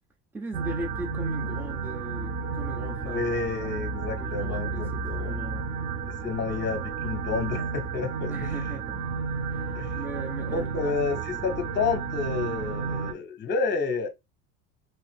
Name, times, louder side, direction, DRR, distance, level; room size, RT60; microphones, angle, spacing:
voice 1, 0.3-3.2 4.2-5.6 8.3-9.0 9.5-10.9 11.2-11.4, right 1 dB, 5° right, 0.5 m, -39 dB
sound 1, 0.5-13.1, right 5 dB, 40° right, 0.7 m, -32 dB
voice 2, 3.0-5.4 6.2-8.5 9.7-10.0 10.5-14.1, left 4 dB, 30° left, 0.8 m, -30 dB
2.8 x 2.4 x 3.4 m
supercardioid pair, 95°, 38 cm